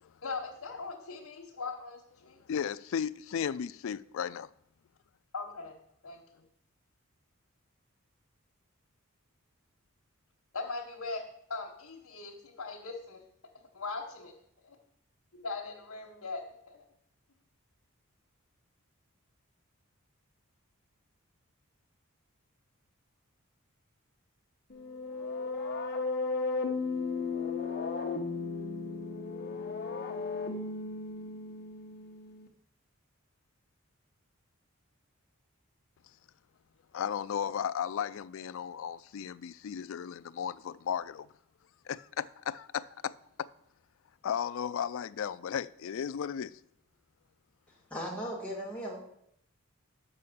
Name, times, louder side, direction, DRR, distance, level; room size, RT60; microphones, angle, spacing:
voice 1, 0.2-2.4 5.3-5.8 6.0-6.5 10.5-13.2 13.7-14.3 14.6-14.8 15.4-16.9, left 3 dB, 85° left, 1.3 m, -40 dB
voice 2, 2.5-4.5 36.9-41.3 41.9-43.1 43.4-43.5 44.2-46.5, left 8 dB, 65° left, 0.3 m, -35 dB
sound 1, 24.7-32.5, left 4 dB, 45° left, 1.0 m, -35 dB
voice 3, 47.9-49.0, equal, 5° left, 2.1 m, -37 dB
6.9 x 5.7 x 6.9 m
head